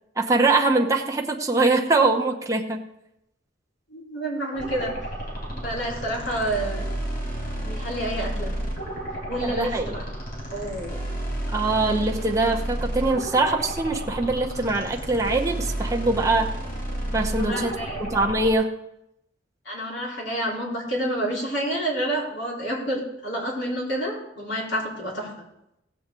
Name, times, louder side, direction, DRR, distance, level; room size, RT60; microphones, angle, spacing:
voice 1, 0.2-2.8 9.4-10.0 11.5-16.5 17.1-17.7 18.0-18.7, right 3 dB, 15° right, 1 dB, 0.8 m, -23 dB
voice 2, 3.9-4.9 5.6-6.8 7.6-8.5 9.3-10.0 10.5-11.0 17.3-18.0 19.7-25.3, right 1 dB, 70° left, -4 dB, 3.7 m, -29 dB
sound 1, 4.5-18.5, right 1 dB, 50° left, 3.8 m, -31 dB
16.5 x 7.7 x 3.8 m, 0.84 s
head